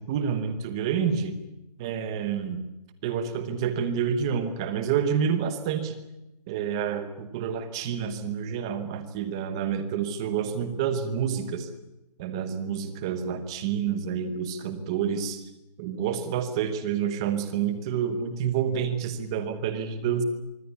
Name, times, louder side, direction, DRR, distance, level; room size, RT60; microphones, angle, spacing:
voice 1, 0.0-1.3 1.8-2.7 3.0-6.0 6.5-11.7 12.2-15.4 15.8-20.2, right 7 dB, 5° right, 10 dB, 0.9 m, -28 dB
24.5 x 24.0 x 8.4 m, 0.92 s
hypercardioid pair, 175°, 21 cm